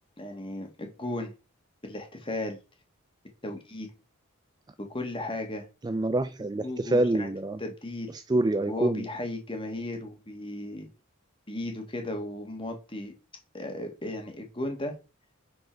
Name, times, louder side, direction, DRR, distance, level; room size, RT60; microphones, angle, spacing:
voice 1, 0.2-1.3 1.8-2.6 3.4-3.9 4.8-5.7 6.6-7.3 7.6-8.1 8.7-10.9 11.5-13.1 13.5-14.9, left 1 dB, 25° left, 1.7 m, -35 dB
voice 2, 5.8-7.6 8.1-9.1, right 2 dB, 20° right, 0.3 m, -26 dB
10.0 x 4.3 x 4.5 m
head